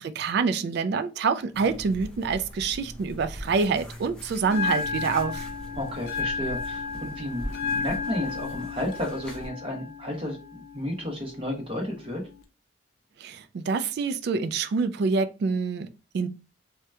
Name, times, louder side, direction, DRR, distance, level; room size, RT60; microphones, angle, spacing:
voice 1, 0.0-5.4 13.2-16.3, right 4 dB, 55° right, 0.3 m, -26 dB
sound 1, 1.5-9.5, equal, 5° left, 0.6 m, -41 dB
Bell, 4.4-12.4, left 4 dB, 50° left, 0.4 m, -34 dB
voice 2, 5.7-12.2, left 1 dB, 25° right, 0.8 m, -32 dB
2.8 x 2.1 x 3.4 m
head